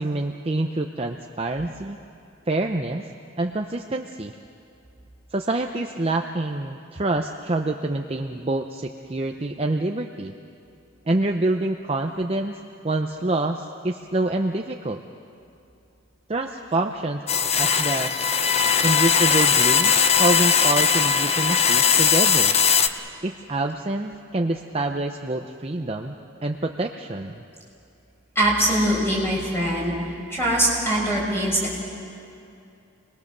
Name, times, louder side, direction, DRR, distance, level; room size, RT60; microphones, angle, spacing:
voice 1, 0.0-2.0 2.5-3.0 3.4-4.3 5.3-10.3 11.1-12.6 12.8-15.0 16.3-17.2 17.6-18.1 18.8-22.5 23.2-26.1 26.4-27.4, right 2 dB, 25° right, 4 dB, 0.6 m, -26 dB
sound 1, 17.3-22.9, left 6 dB, 30° left, 0.7 m, -19 dB
voice 2, 28.3-29.9 30.3-31.8, right 1 dB, 10° left, -4 dB, 5.9 m, -22 dB
28.0 x 20.5 x 6.7 m, 2.7 s
head